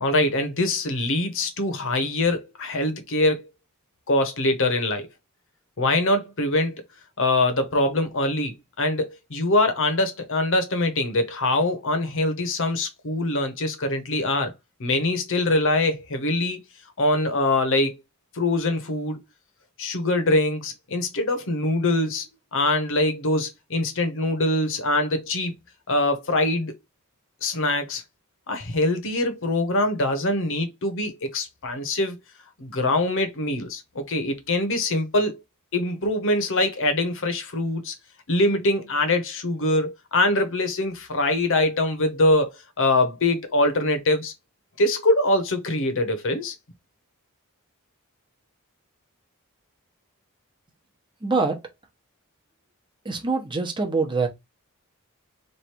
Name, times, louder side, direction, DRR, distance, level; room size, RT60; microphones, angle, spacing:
voice 1, 0.0-3.5 4.1-5.1 5.8-6.8 7.2-14.5 14.8-16.6 17.0-18.0 18.3-19.2 19.8-25.5 25.9-26.7 27.4-28.0 28.5-32.2 32.6-35.3 35.7-37.9 38.3-42.5 42.8-44.3 44.8-46.5, left 2 dB, 60° left, 1.0 m, -23 dB
voice 2, 51.2-51.6 53.0-54.3, right 4 dB, 20° right, 0.9 m, -24 dB
3.3 x 2.6 x 4.2 m
head